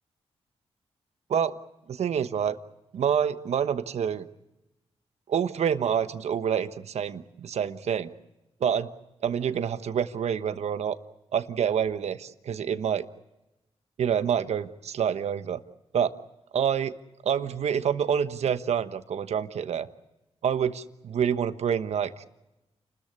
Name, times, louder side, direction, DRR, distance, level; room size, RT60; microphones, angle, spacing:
voice 1, 1.9-2.6 2.9-4.3 5.3-8.1 8.6-8.9 9.2-11.0 11.3-13.0 14.0-15.6 15.9-16.1 16.5-16.9 17.2-19.9 20.4-22.3, right 8 dB, 75° right, 11 dB, 1.2 m, -27 dB
29.5 x 13.5 x 9.7 m, 0.97 s
cardioid pair, 65°, 11 cm